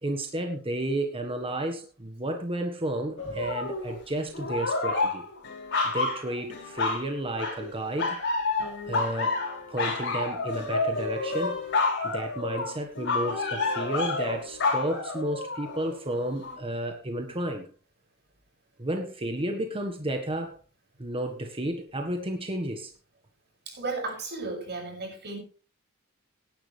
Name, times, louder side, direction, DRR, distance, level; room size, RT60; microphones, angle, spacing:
voice 1, 0.0-5.2 5.8-8.2 8.9-9.4 9.7-11.6 12.0-17.7 18.8-20.6 21.0-22.9, right 1 dB, 25° right, 4 dB, 1.5 m, -32 dB
sound 1, 3.2-4.0 4.3-7.1 7.4-7.7 8.0-15.9 16.4-16.6, left 3 dB, 55° left, 6.0 m, -29 dB
voice 2, 23.7-25.4, right 3 dB, 50° right, 1 dB, 7.2 m, -34 dB
17.5 x 11.0 x 3.4 m, 0.37 s
head